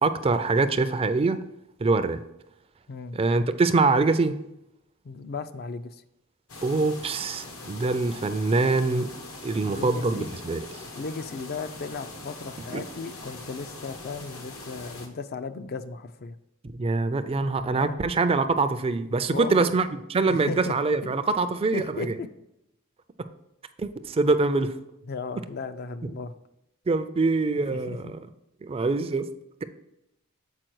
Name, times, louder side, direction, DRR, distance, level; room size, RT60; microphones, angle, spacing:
voice 1, 0.0-1.4 1.8-2.2 3.1-4.4 6.6-9.1 9.4-10.7 12.7-12.8 16.6-22.1 23.8-24.8 26.9-28.2 28.6-29.3, right 3 dB, 25° right, 0.4 m, -24 dB
voice 2, 2.9-3.2 5.0-6.0 9.6-10.3 10.9-16.4 17.7-18.0 19.3-19.7 20.3-20.7 21.0-21.1 21.7-22.3 25.1-26.3 27.7-28.0, left 4 dB, 45° left, 0.4 m, -36 dB
sound 1, 6.5-15.1, left 2 dB, 70° left, 1.1 m, -42 dB
7.6 x 4.6 x 4.6 m
head